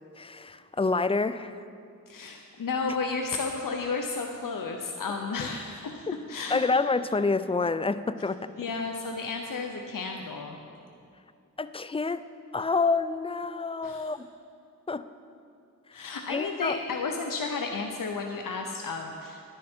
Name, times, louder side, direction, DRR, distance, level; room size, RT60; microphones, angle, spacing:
voice 1, 0.2-1.6 6.1-6.2 6.5-8.5 11.6-12.2 12.5-14.3 14.9-15.1 16.0-16.8, left 3 dB, 20° left, 14 dB, 0.4 m, -28 dB
voice 2, 2.1-6.6 8.6-10.6 13.8-14.1 15.9-19.4, left 4 dB, 80° left, 3 dB, 0.7 m, -33 dB
10.5 x 9.9 x 4.4 m, 2.5 s
cardioid pair, 40°, 33 cm